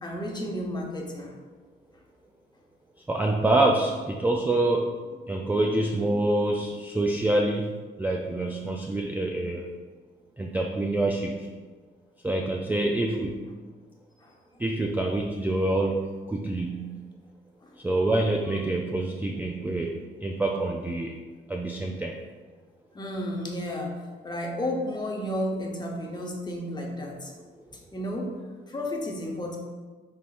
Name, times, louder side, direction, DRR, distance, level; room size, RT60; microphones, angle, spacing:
voice 1, 0.0-1.3 14.2-14.3 17.6-17.7 22.9-23.9 24.2-27.3 27.9-28.4 28.7-29.6, left 1 dB, 20° left, -1 dB, 0.9 m, -32 dB
voice 2, 3.1-4.9 5.2-9.7 10.4-11.5 12.2-13.5 14.6-17.0 17.8-21.2 21.5-22.2, right 2 dB, 10° right, 0 dB, 0.3 m, -26 dB
5.5 x 3.4 x 2.5 m, 1.4 s
cardioid pair, 90°, 20 cm